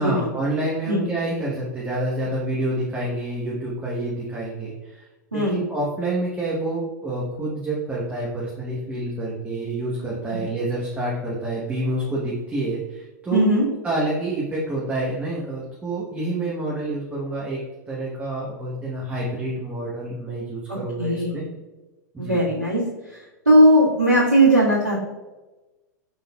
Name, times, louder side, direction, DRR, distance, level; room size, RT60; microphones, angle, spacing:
voice 1, 0.0-5.1 5.3-13.4 13.8-17.6 17.9-21.4 22.1-22.4, right 1 dB, 15° right, -5 dB, 0.9 m, -28 dB
voice 2, 13.3-13.6 20.7-21.5 22.2-22.8 23.4-25.0, right 1 dB, 90° right, -10 dB, 1.4 m, -18 dB
5.5 x 3.6 x 2.2 m, 1.1 s
figure-of-eight pair, 100°, 10 cm